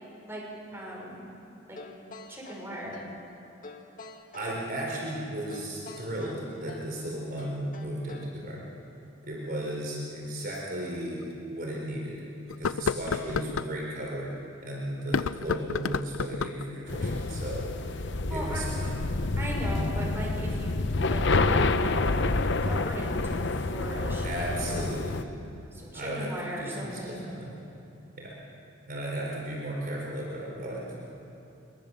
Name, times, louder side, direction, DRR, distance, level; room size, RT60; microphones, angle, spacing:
voice 1, 0.7-1.2 1.7-1.8 2.3-3.0 18.3-18.6 19.4-22.2 22.6-25.2 25.7-27.2, equal, 10° right, -3 dB, 5.9 m, -38 dB
sound 1, 1.8-3.2 3.6-4.6 5.5-7.0 7.4-8.4, left 3 dB, 45° left, 2.0 m, -46 dB
voice 2, 4.3-8.7 9.2-12.2 12.5-14.3 14.6-18.0 18.3-19.0 23.5-23.7 24.2-25.2 25.9-27.6 28.1-28.4 28.9-31.0, right 1 dB, 45° right, -3 dB, 4.3 m, -35 dB
sound 2, 10.6-10.7 11.2-11.3 12.5-13.7 15.0-16.7, left 5 dB, 80° left, 0.5 m, -30 dB
sound 3, 16.9-25.2, left 3 dB, 60° left, 0.9 m, -28 dB
22.5 x 22.5 x 7.1 m, 2.8 s
head